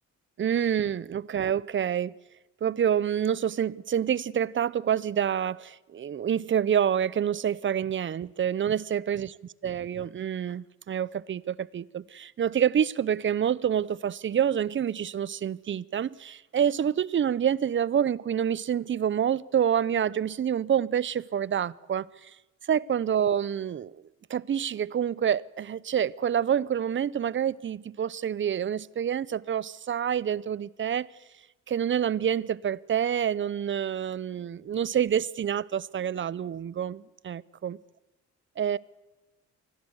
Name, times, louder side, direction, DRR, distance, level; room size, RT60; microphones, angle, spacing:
voice 1, 0.4-2.1 2.6-9.3 9.6-22.3 22.7-24.0 24.3-31.1 31.7-37.8 38.6-38.8, right 9 dB, 40° right, 0.7 m, -27 dB
25.0 x 16.0 x 8.0 m
cardioid pair, 90°, 30 cm